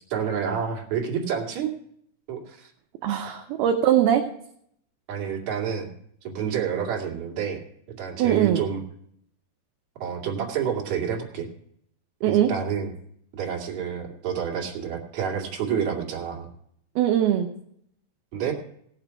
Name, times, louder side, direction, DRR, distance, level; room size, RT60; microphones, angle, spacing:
voice 1, 0.1-1.7 2.3-2.7 5.1-5.9 6.2-7.6 7.9-8.8 10.0-11.5 12.2-12.9 13.3-16.5 18.3-18.5, right 7 dB, 50° right, -1 dB, 3.3 m, -29 dB
voice 2, 3.0-4.2 8.2-8.6 12.2-12.5 17.0-17.5, right 10 dB, 75° right, 3 dB, 2.7 m, -21 dB
18.0 x 7.3 x 5.8 m, 0.69 s
omnidirectional pair, 4.9 m